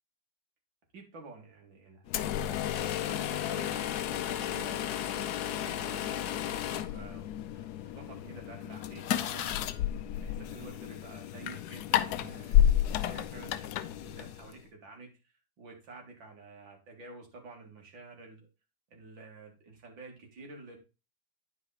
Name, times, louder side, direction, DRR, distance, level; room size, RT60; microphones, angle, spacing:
voice 1, 0.9-2.1 2.7-15.1 15.6-18.5 18.9-20.8, right 3 dB, 75° right, 1 dB, 3.0 m, -50 dB
sound 1, 2.1-14.6, left 11 dB, 70° left, 1.0 m, -31 dB
9.7 x 4.9 x 4.1 m, 0.29 s
omnidirectional pair, 2.1 m